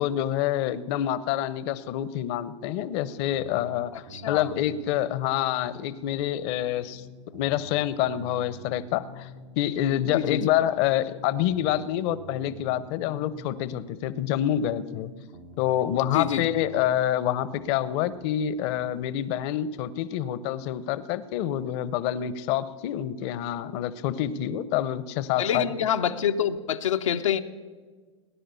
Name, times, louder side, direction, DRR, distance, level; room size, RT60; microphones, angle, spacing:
voice 1, 0.0-7.0 7.3-9.3 9.6-15.1 15.6-25.7, left 11 dB, 55° left, 15 dB, 0.8 m, -27 dB
sound 1, 3.3-5.8 6.1-9.8 10.1-13.8 14.1-17.8 18.1-19.1, right 1 dB, 80° right, 2.4 m, -47 dB
voice 2, 4.1-4.5 10.1-10.4 16.1-16.4 25.4-27.4, left 9 dB, 90° left, 4 dB, 0.8 m, -26 dB
18.5 x 10.0 x 6.9 m, 1.4 s
hypercardioid pair, 100°, 16 cm